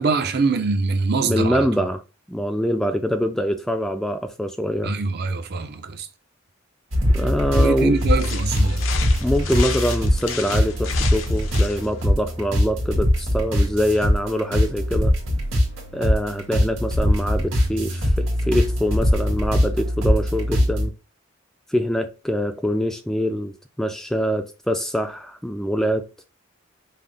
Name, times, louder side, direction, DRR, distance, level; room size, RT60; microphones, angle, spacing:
voice 1, 0.0-1.7 4.8-6.1 7.5-8.9, right 3 dB, 50° right, 0.5 m, -23 dB
voice 2, 1.3-2.0 2.3-4.9 7.1-8.0 9.2-15.1 15.9-20.9 21.7-26.1, equal, ahead, 0.3 m, -24 dB
sound 1, 6.9-20.9, equal, 75° right, 1.7 m, -22 dB
sound 2, 8.0-12.0, left 7 dB, 75° left, 0.7 m, -33 dB
5.6 x 2.0 x 3.3 m
head